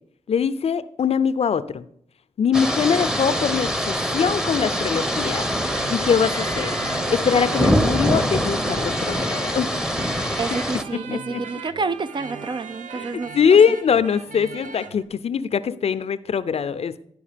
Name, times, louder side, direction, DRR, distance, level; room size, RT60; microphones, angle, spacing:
voice 1, 0.3-1.8 2.4-5.5 5.9-6.7 7.1-9.7 10.9-11.4 12.9-13.1 13.3-17.1, left 7 dB, 60° left, 0.5 m, -22 dB
sound 1, 2.5-10.8, equal, 5° right, 0.9 m, -24 dB
sound 2, 5.6-15.0, right 5 dB, 80° right, 0.7 m, -38 dB
voice 2, 10.4-13.3, right 4 dB, 40° right, 0.5 m, -29 dB
10.5 x 4.9 x 5.1 m
supercardioid pair, 50°, 12 cm